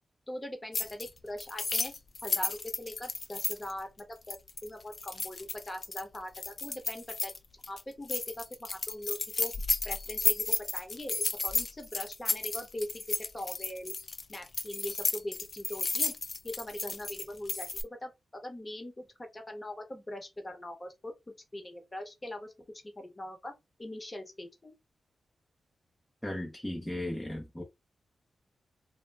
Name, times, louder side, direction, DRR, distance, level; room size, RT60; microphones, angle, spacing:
voice 1, 0.3-1.9 2.2-7.3 7.7-9.5 9.8-13.0 13.3-13.9 14.3-16.1 16.4-19.1 19.3-21.1 21.5-22.5 23.0-23.5 23.8-24.7, left 1 dB, 25° left, 0.9 m, -41 dB
sound 1, 0.7-1.1 1.4-7.4 7.6-7.8 8.1-17.8, left 3 dB, 45° left, 0.4 m, -33 dB
voice 2, 26.2-27.6, left 1 dB, 5° left, 0.6 m, -36 dB
2.2 x 2.1 x 3.3 m
cardioid pair, 70°, 0 cm